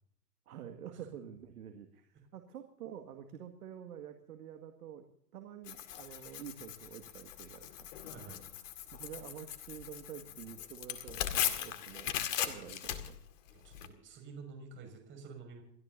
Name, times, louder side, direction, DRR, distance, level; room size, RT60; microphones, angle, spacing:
voice 1, 0.5-5.1 5.3-7.9 8.9-12.2 12.4-13.2, right 9 dB, 65° right, 6 dB, 2.1 m, -48 dB
Tearing, 5.7-13.9, left 10 dB, 50° left, 2.1 m, -39 dB
voice 2, 8.1-8.5 13.5-15.6, right 5 dB, 25° right, 3 dB, 6.0 m, -50 dB
29.5 x 13.5 x 2.8 m, 0.67 s
hypercardioid pair, 120°, 48 cm